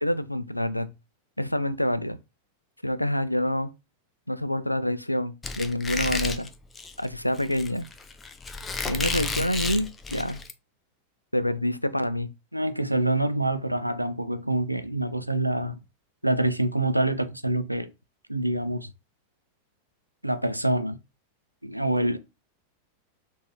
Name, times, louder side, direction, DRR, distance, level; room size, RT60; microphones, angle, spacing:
voice 1, 0.0-0.9 1.4-2.2 2.8-3.7 4.3-6.5 7.0-7.9 8.9-10.4 11.3-12.3, left 1 dB, 90° left, 0.3 m, -27 dB
Squeak, 5.4-10.5, left 3 dB, 15° left, 0.4 m, -32 dB
voice 2, 12.5-15.8 16.2-17.9 18.3-18.9 20.2-21.0 21.6-22.2, right 1 dB, 90° right, 0.4 m, -26 dB
3.9 x 2.4 x 2.8 m
figure-of-eight pair, 90°, 0 cm